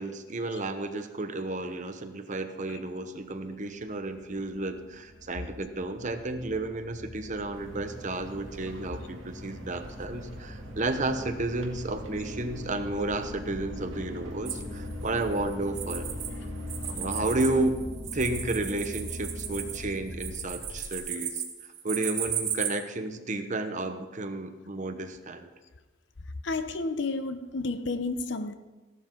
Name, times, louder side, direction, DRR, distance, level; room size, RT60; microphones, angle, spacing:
voice 1, 0.0-16.1 16.8-17.8 18.1-21.4 21.8-25.5, right 2 dB, 40° right, 8 dB, 1.0 m, -32 dB
sound 1, 3.7-21.0, equal, 20° left, 2.3 m, -42 dB
sound 2, 7.5-17.7, left 2 dB, 80° right, 2.0 m, -44 dB
sound 3, 14.5-16.3 16.6-22.7, right 9 dB, 60° right, 2.3 m, -35 dB
voice 2, 26.4-28.5, left 3 dB, 60° left, 10 dB, 0.8 m, -31 dB
16.0 x 12.0 x 3.8 m, 1.2 s
head